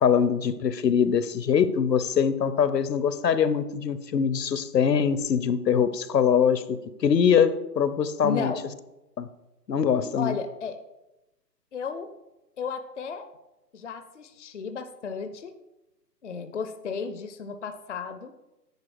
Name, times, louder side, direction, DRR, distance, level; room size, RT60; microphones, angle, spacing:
voice 1, 0.0-8.5 9.2-9.3 9.7-10.4, left 7 dB, 75° left, 13 dB, 0.8 m, -23 dB
voice 2, 8.2-8.7 10.2-10.8 11.7-12.1 12.6-13.3 13.7-15.6 16.2-18.3, left 5 dB, 50° left, 9 dB, 0.5 m, -34 dB
9.7 x 4.6 x 4.7 m, 0.97 s
hypercardioid pair, 155°, 50 cm